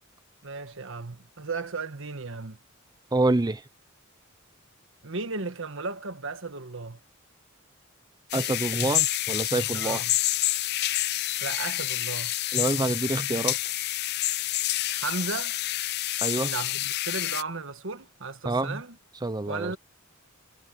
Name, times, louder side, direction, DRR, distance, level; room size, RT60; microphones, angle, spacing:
voice 1, 0.4-2.6 5.0-7.0 9.7-10.2 11.4-12.3 14.9-15.6 16.4-19.0 19.5-19.8, right 4 dB, 65° right, 1.5 m, -35 dB
voice 2, 3.1-3.6 8.3-10.0 12.5-13.6 16.2-16.5 18.4-18.8 19.2-19.7, right 2 dB, 20° right, 0.6 m, -27 dB
sound 1, 8.3-17.4, left 16 dB, 50° left, 0.4 m, -28 dB
head